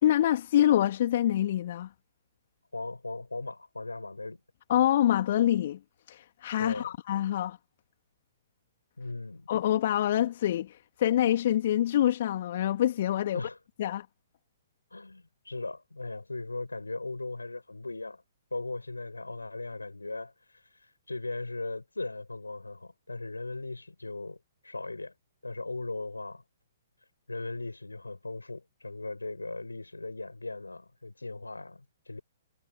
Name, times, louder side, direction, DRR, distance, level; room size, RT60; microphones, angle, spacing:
voice 1, 0.0-1.9 4.7-5.8 6.1-7.6 9.5-13.4 13.8-14.1, left 12 dB, 45° left, 3.1 m, -26 dB
voice 2, 2.7-4.4 6.6-6.9 9.0-9.5 13.3-13.6 14.9-18.2 18.5-20.3 21.1-24.4 24.6-25.1 25.4-26.4 27.3-32.2, left 2 dB, 80° left, 7.0 m, -38 dB
figure-of-eight pair, 120°, 0 cm